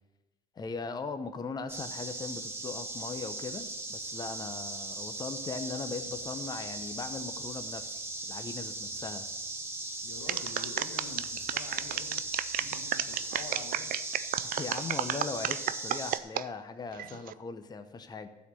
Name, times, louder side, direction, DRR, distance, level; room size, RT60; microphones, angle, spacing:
voice 1, 0.5-9.2 14.4-18.3, left 4 dB, 25° left, 8 dB, 0.7 m, -39 dB
sound 1, 1.7-16.2, right 2 dB, 15° right, 1.2 m, -38 dB
voice 2, 10.0-14.0, left 5 dB, 85° left, 5 dB, 1.3 m, -47 dB
sound 2, 10.3-16.4 16.9-17.3, right 12 dB, 55° right, 0.4 m, -32 dB
12.5 x 4.4 x 8.3 m, 1.1 s
cardioid pair, 110°, 17 cm